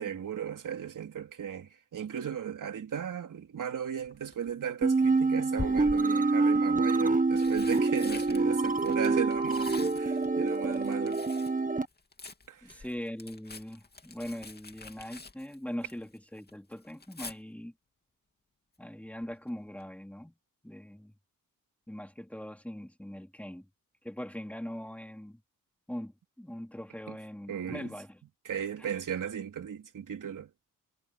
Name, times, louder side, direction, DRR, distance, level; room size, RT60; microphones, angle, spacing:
voice 1, 0.0-11.2 12.5-12.8 27.1-27.2 27.5-27.9 28.5-30.5, right 8 dB, 70° right, 3.8 m, -36 dB
Tearing, 4.1-4.5 5.5-6.3 7.1-11.6 11.9-16.2 16.5-17.3 19.2-19.5 19.8-19.9, left 3 dB, 30° left, 2.4 m, -44 dB
sound 1, 4.8-11.8, right 3 dB, 25° right, 1.6 m, -26 dB
voice 2, 12.6-17.7 18.8-20.3 20.6-21.1 21.9-23.7 24.0-25.4 25.9-28.2 28.8-29.0, equal, 5° left, 3.1 m, -41 dB
cardioid pair, 80°, 33 cm